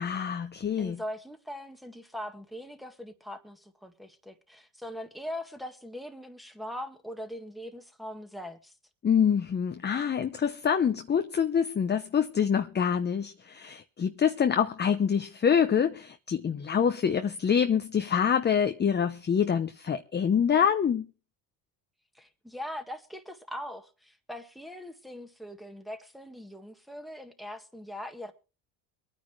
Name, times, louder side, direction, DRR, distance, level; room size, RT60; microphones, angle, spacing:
voice 1, 0.0-1.0 9.0-21.1, left 7 dB, 20° left, 0.8 m, -26 dB
voice 2, 0.8-8.7 22.1-28.3, equal, ahead, 1.7 m, -41 dB
24.0 x 9.5 x 3.2 m
supercardioid pair, 100°, 47 cm